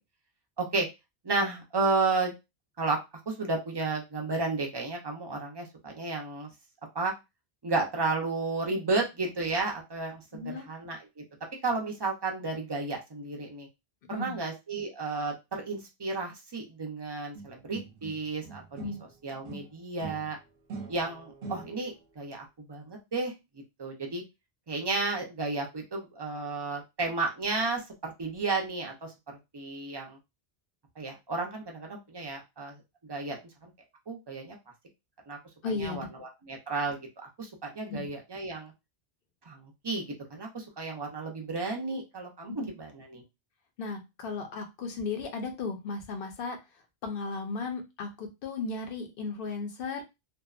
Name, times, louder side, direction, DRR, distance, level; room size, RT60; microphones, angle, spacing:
voice 1, 1.2-2.3 2.8-3.0 3.3-6.5 6.9-7.1 7.6-11.2 11.6-13.7 14.1-18.9 19.2-20.4 20.9-23.3 23.8-24.2 24.7-30.2 31.0-32.8 33.1-33.4 33.6-33.7 34.1-34.6 35.3-35.4 35.7-37.0 37.4-38.7 39.5-43.2, right 3 dB, 35° right, 1 dB, 0.5 m, -32 dB
voice 2, 10.3-10.7 14.1-14.4 18.8-19.0 21.4-21.6 35.6-36.1 37.9-38.1 42.6-42.7 43.8-46.6 47.0-50.0, left 4 dB, 60° left, 5 dB, 0.8 m, -35 dB
sound 1, 17.3-19.1 19.4-22.0, right 4 dB, 60° right, 0.8 m, -44 dB
2.7 x 2.1 x 2.3 m, 0.23 s
omnidirectional pair, 1.1 m